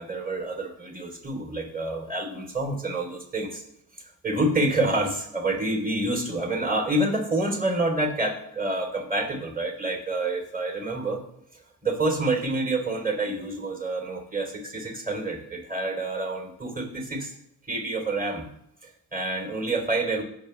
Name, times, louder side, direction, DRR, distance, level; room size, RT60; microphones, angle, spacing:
voice 1, 0.0-3.6 4.2-11.2 11.8-17.3 17.7-18.5 18.8-20.2, right 2 dB, 25° right, 3 dB, 3.5 m, -28 dB
18.5 x 7.2 x 3.4 m, 0.72 s
cardioid pair, 85°, 36 cm